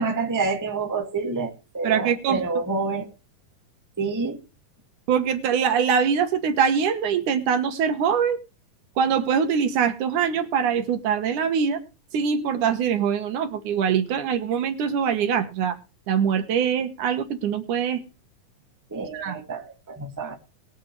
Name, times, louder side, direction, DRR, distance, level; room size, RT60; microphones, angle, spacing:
voice 1, 0.0-3.1 4.0-4.4 18.9-20.3, right 3 dB, 10° right, 2 dB, 1.3 m, -28 dB
voice 2, 1.8-2.4 5.1-8.4 9.0-11.8 12.1-15.8 16.1-18.0 19.1-19.4, right 7 dB, 70° right, 8 dB, 2.7 m, -23 dB
21.5 x 7.4 x 3.2 m, 0.31 s
omnidirectional pair, 3.8 m